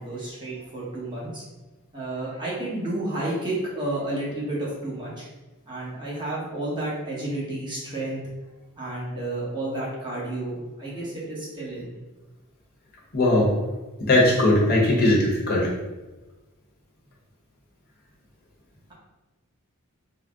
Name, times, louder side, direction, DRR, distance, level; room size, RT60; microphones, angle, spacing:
voice 1, 0.0-1.4 1.9-5.3 5.7-8.2 8.8-12.0, right 1 dB, 20° right, -7 dB, 0.9 m, -31 dB
voice 2, 13.1-13.5 14.0-15.7, left 1 dB, 45° left, -4 dB, 0.9 m, -19 dB
3.8 x 2.0 x 3.5 m, 1.1 s
head